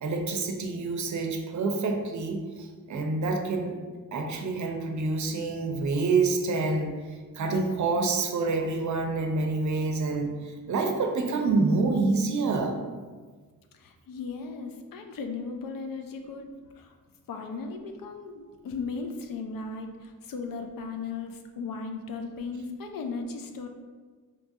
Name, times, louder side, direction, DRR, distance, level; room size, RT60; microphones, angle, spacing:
voice 1, 0.0-3.8 4.1-6.9 7.3-12.8, right 3 dB, 60° right, 3 dB, 0.5 m, -27 dB
voice 2, 13.7-16.5 16.7-17.0 17.3-23.7, left 4 dB, 75° left, 5 dB, 0.5 m, -36 dB
3.9 x 2.3 x 2.6 m, 1.4 s
cardioid pair, 65°, 34 cm